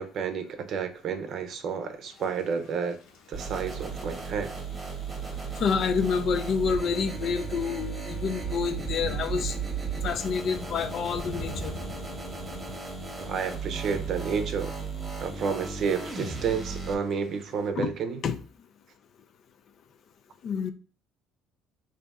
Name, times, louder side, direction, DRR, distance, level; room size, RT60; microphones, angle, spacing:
voice 1, 0.0-3.0 3.3-4.5 13.2-14.7 15.2-18.2, right 6 dB, 50° right, 0.6 m, -30 dB
Thunder / Rain, 2.0-17.7, left 1 dB, 80° left, 1.1 m, -46 dB
sound 1, 3.3-16.9, right 5 dB, 20° right, 1.0 m, -35 dB
voice 2, 5.6-9.6 10.0-11.7 17.8-17.9 18.2-18.4 20.4-20.7, left 6 dB, 50° left, 0.4 m, -28 dB
4.1 x 2.7 x 3.5 m
cardioid pair, 130°, 0 cm